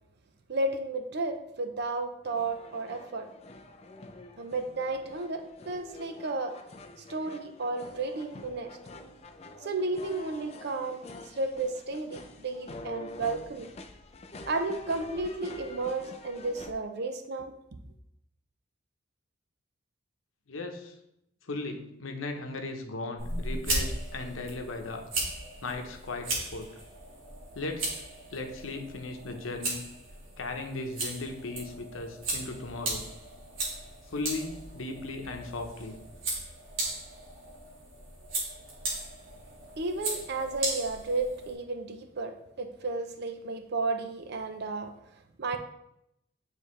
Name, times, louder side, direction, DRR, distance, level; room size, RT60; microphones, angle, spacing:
voice 1, 0.5-3.3 4.4-6.5 7.1-8.8 9.6-13.7 14.5-17.5 39.8-44.9 45.4-45.6, right 3 dB, 55° right, 7 dB, 0.6 m, -33 dB
sound 1, 2.2-16.7, left 2 dB, 30° left, 0.5 m, -47 dB
voice 2, 20.5-20.9 21.5-25.1 25.6-26.7 27.5-28.0 28.3-29.8 30.4-33.1 34.1-36.0, left 2 dB, 90° left, 4 dB, 0.9 m, -37 dB
sound 2, 23.2-41.5, right 2 dB, 80° right, 1.6 m, -37 dB
9.3 x 3.3 x 3.2 m, 0.80 s
head